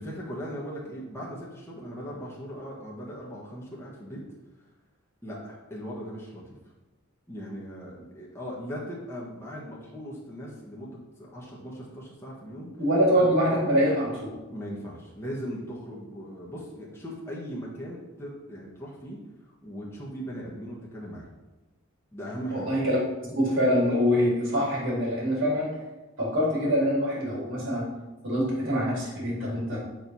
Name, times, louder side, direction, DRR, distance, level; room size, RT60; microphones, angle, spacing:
voice 1, 0.0-4.2 5.2-6.6 7.3-12.7 13.2-13.3 14.5-19.2 19.6-21.4 22.1-22.7, equal, 10° left, -5 dB, 1.4 m, -39 dB
voice 2, 12.8-14.3 22.5-23.0 23.4-25.7 26.2-27.9 28.2-29.8, equal, 80° right, -5 dB, 2.7 m, -24 dB
8.0 x 4.6 x 5.4 m, 1.1 s
head